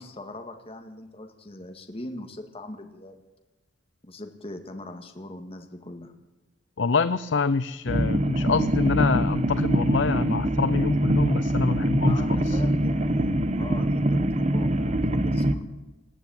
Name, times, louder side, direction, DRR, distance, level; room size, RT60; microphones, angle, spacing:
voice 1, 0.0-3.2 4.0-6.1 12.0-15.6, left 1 dB, 35° left, 5 dB, 1.9 m, -41 dB
voice 2, 6.8-12.2 12.5-12.6, left 4 dB, 85° left, 14 dB, 0.6 m, -26 dB
sound 1, 7.9-15.5, right 1 dB, 40° right, 1.2 m, -24 dB
20.0 x 14.5 x 8.8 m, 1.1 s
head